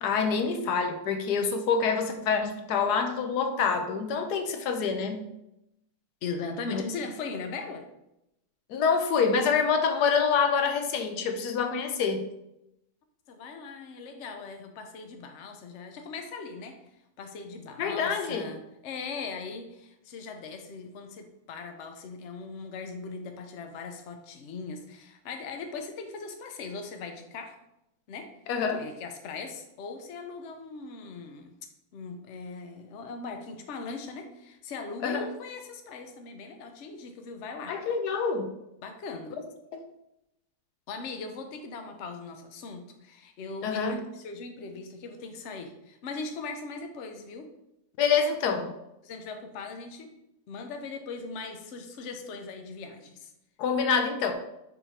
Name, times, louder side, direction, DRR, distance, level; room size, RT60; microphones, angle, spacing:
voice 1, 0.0-5.2 6.7-6.8 8.7-12.3 17.8-18.4 28.5-28.8 35.0-35.3 37.7-38.5 39.7-39.8 43.6-44.0 48.0-48.7 53.6-54.3, left 5 dB, 85° left, 7 dB, 1.2 m, -26 dB
voice 2, 6.2-7.9 13.3-16.8 17.2-27.6 28.1-28.3 28.8-31.5 31.9-37.8 38.8-39.4 40.9-47.5 49.0-50.1 50.5-53.3, left 4 dB, 55° left, 5 dB, 0.9 m, -39 dB
5.0 x 4.5 x 4.3 m, 0.86 s
omnidirectional pair, 1.7 m